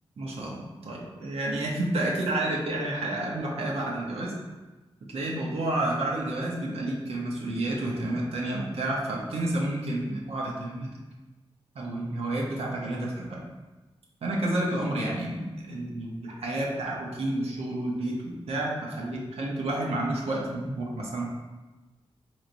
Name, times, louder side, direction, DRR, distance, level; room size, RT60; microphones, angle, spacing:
voice 1, 0.2-4.3 5.1-10.9 11.7-13.4 14.2-21.3, right 1 dB, 85° right, -3 dB, 0.7 m, -30 dB
4.2 x 3.0 x 2.5 m, 1.2 s
wide cardioid pair, 110°, 10 cm